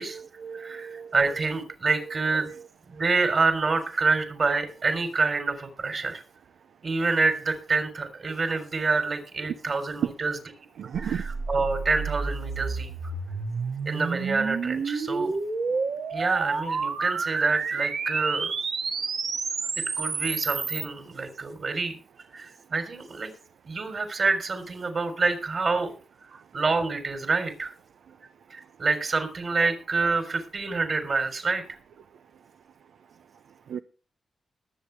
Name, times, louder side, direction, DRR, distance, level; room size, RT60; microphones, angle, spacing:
voice 1, 0.0-1.1 10.8-11.2 33.7-33.8, right 8 dB, 85° right, 0.5 m, -35 dB
voice 2, 0.5-2.5 2.9-6.2 6.8-10.4 11.0-12.9 13.9-15.4 16.1-18.5 20.0-22.0 22.3-23.3 23.6-25.9 26.5-27.7 28.2-31.8, right 4 dB, 50° right, 3.8 m, -27 dB
sound 1, 10.9-20.8, right 4 dB, 70° right, 2.0 m, -30 dB
20.5 x 8.0 x 3.4 m
cardioid pair, 85°, 0 cm